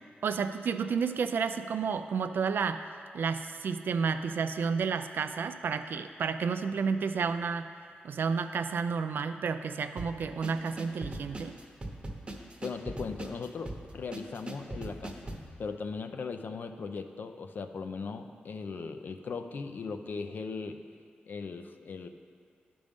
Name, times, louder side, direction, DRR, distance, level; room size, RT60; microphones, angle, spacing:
voice 1, 0.2-2.8 3.1-7.7 8.0-11.5, right 5 dB, 75° right, 9 dB, 0.4 m, -31 dB
sound 1, 10.0-15.5, right 1 dB, 30° right, 0.9 m, -40 dB
voice 2, 12.6-20.8 21.3-22.1, left 4 dB, 60° left, 7 dB, 0.5 m, -38 dB
11.5 x 5.2 x 3.6 m, 2.2 s
cardioid pair, 85°, 4 cm